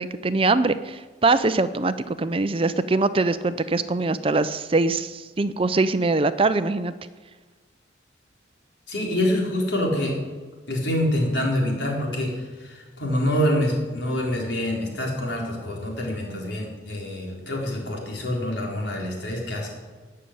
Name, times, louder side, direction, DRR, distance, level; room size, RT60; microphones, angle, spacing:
voice 1, 0.0-6.9, right 3 dB, 30° right, 13 dB, 0.5 m, -23 dB
voice 2, 8.9-10.2 10.7-19.7, left 1 dB, 70° left, -1 dB, 4.3 m, -26 dB
18.0 x 6.8 x 8.7 m, 1.4 s
head